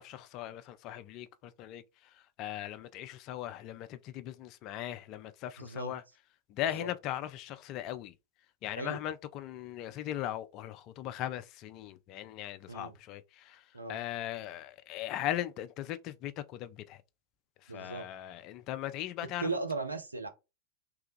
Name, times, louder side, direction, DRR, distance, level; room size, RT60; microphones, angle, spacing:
voice 1, 0.0-6.0 6.5-8.1 8.6-17.0 17.6-19.5, left 12 dB, 40° left, 0.3 m, -39 dB
voice 2, 5.6-6.0 6.7-6.9 8.8-9.0 12.7-13.0 13.7-14.0 17.7-18.1 19.4-20.3, right 3 dB, 80° right, 0.5 m, -37 dB
3.2 x 2.3 x 3.0 m
figure-of-eight pair, 90°, 0 cm